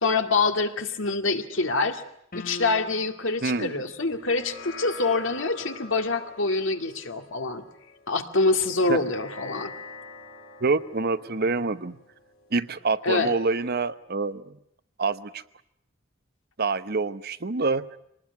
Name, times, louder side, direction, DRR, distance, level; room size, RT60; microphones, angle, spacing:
voice 1, 0.0-2.0 2.3-7.6 8.1-9.7 13.0-13.3, left 3 dB, 70° left, 6 dB, 2.2 m, -25 dB
sound 1, 2.3-3.4, left 1 dB, 45° left, 1.3 m, -40 dB
voice 2, 3.4-3.7 8.9-9.0 10.6-12.0 12.5-14.6 15.0-15.4 16.6-17.8, right 3 dB, 50° right, 14 dB, 0.9 m, -26 dB
sound 2, 4.1-12.8, left 3 dB, 85° left, 4.2 m, -45 dB
25.0 x 19.5 x 9.4 m, 0.75 s
head